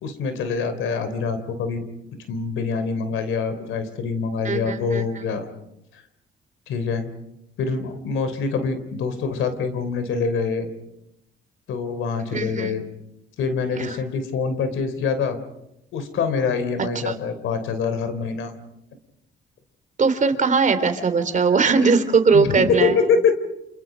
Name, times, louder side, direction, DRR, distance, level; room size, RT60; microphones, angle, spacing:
voice 1, 0.0-1.8 2.3-5.5 5.9-6.0 6.7-7.1 7.6-10.7 11.7-12.8 13.4-15.4 15.9-18.5 22.3-23.4, left 5 dB, 80° left, 10 dB, 3.4 m, -25 dB
voice 2, 4.4-5.0 12.3-12.7 13.8-13.9 17.0-17.1 20.0-23.0, right 4 dB, 40° right, 9 dB, 3.2 m, -20 dB
30.0 x 28.0 x 5.0 m, 0.84 s
cardioid pair, 90°, 20 cm